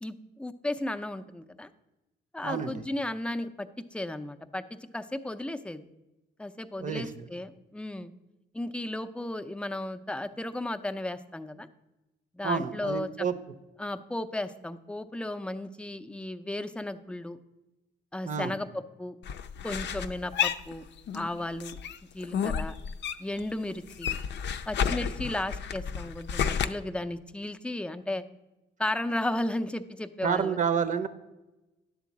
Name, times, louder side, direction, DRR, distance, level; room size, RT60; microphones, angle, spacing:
voice 1, 0.0-1.7 2.3-4.6 4.9-5.9 6.4-8.1 8.5-11.7 12.3-13.3 13.8-17.4 18.1-19.2 19.6-20.8 21.1-21.8 22.1-22.7 23.2-24.2 24.7-28.2 28.8-30.6, left 1 dB, 5° left, 8 dB, 0.5 m, -34 dB
voice 2, 2.4-2.7 6.8-7.2 12.4-13.3 18.2-18.5 30.2-31.1, right 6 dB, 40° right, 11 dB, 0.7 m, -29 dB
sound 1, 19.2-21.3 21.6-23.4 23.7-26.7, left 7 dB, 60° left, 0.5 m, -31 dB
10.5 x 3.8 x 7.2 m, 1.0 s
cardioid pair, 90°, 20 cm